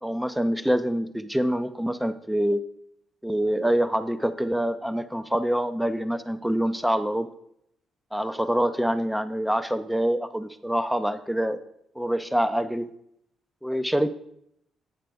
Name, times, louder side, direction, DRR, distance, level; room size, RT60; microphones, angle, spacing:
voice 1, 0.0-2.6 3.2-7.3 8.1-11.6 12.0-12.9 13.6-14.1, equal, 5° right, 12 dB, 0.4 m, -25 dB
8.8 x 5.8 x 3.4 m, 0.75 s
cardioid pair, 90°, 0 cm